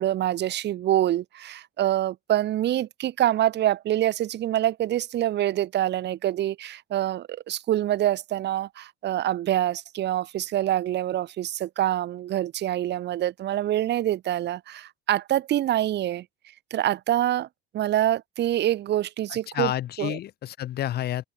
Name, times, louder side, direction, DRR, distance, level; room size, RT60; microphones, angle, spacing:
voice 1, 0.0-16.2 16.7-17.5 17.7-19.7 20.0-20.2, right 12 dB, 55° right, 2.3 m, -25 dB
voice 2, 19.3-21.2, left 12 dB, 50° left, 1.0 m, -30 dB
open air
supercardioid pair, 95°, 21 cm